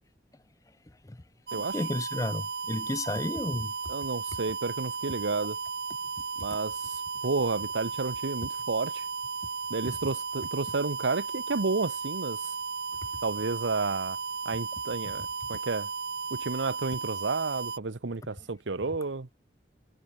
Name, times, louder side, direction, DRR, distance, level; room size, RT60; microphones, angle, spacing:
voice 1, 1.5-3.7, left 1 dB, 20° left, 0.5 m, -32 dB
sound 1, 1.5-17.8, right 5 dB, 60° right, 1.0 m, -35 dB
voice 2, 3.9-5.6 6.4-9.0 9.7-12.5 13.2-14.2 14.4-15.9 16.3-19.3, right 3 dB, 85° right, 1.0 m, -31 dB
head